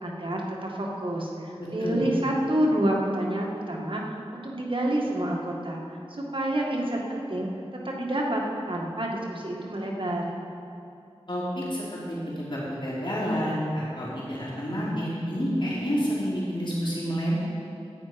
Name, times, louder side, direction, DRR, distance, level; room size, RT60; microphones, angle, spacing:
voice 1, 0.0-5.8 6.3-7.5 7.8-8.4 8.7-10.3, right 1 dB, 55° right, -2 dB, 1.9 m, -28 dB
voice 2, 1.6-2.0 11.3-17.4, equal, 50° left, -8 dB, 3.3 m, -29 dB
13.5 x 10.0 x 5.2 m, 2.6 s
wide cardioid pair, 45°, 11 cm